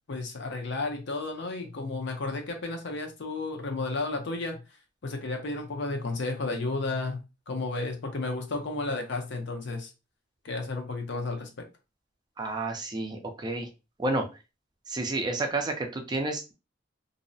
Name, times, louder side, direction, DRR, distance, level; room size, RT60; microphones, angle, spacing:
voice 1, 0.1-4.6 5.0-7.2 7.5-9.9 10.4-11.6, left 3 dB, 65° left, 4 dB, 0.6 m, -32 dB
voice 2, 12.4-13.7 14.0-14.2 14.9-16.5, right 2 dB, 20° right, 4 dB, 0.4 m, -30 dB
2.6 x 2.0 x 2.6 m, 0.28 s
head